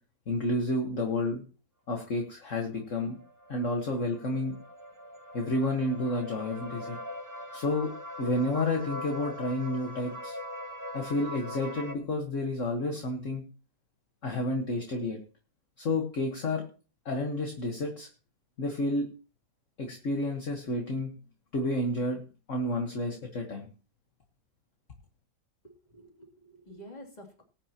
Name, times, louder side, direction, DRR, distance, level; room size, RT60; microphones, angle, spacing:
voice 1, 0.3-1.4 1.9-3.2 3.5-4.6 5.3-7.0 7.5-7.9 8.2-10.4 10.9-13.4 14.2-15.2 15.8-16.6 17.1-18.1 18.6-19.1 19.8-21.1 21.5-22.2 22.5-23.7, left 2 dB, 50° left, 3 dB, 1.8 m, -30 dB
sound 1, 2.6-11.9, left 1 dB, 10° right, 1.2 m, -42 dB
voice 2, 25.6-27.4, equal, 25° left, 0 dB, 3.1 m, -49 dB
19.5 x 9.1 x 3.0 m, 0.35 s
omnidirectional pair, 1.8 m